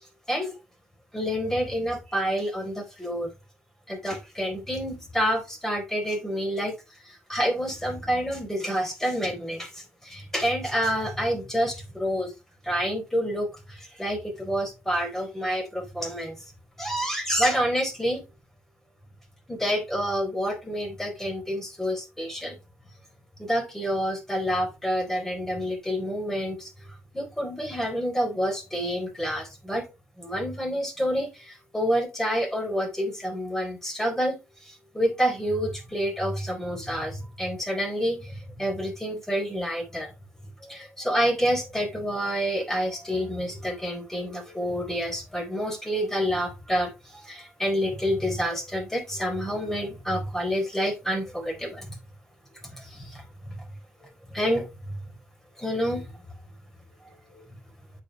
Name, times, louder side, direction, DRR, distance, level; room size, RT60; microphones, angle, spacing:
voice 1, 1.1-3.3 3.9-6.7 7.0-12.3 12.6-16.4 16.8-18.2 19.5-22.6 23.4-26.7 27.1-29.9 30.2-40.1 40.6-52.0 52.6-53.7 54.0-55.0 55.6-56.0 57.3-57.5, equal, 10° left, 3.8 m, -28 dB
8.2 x 5.8 x 3.2 m
supercardioid pair, 55°, 5 cm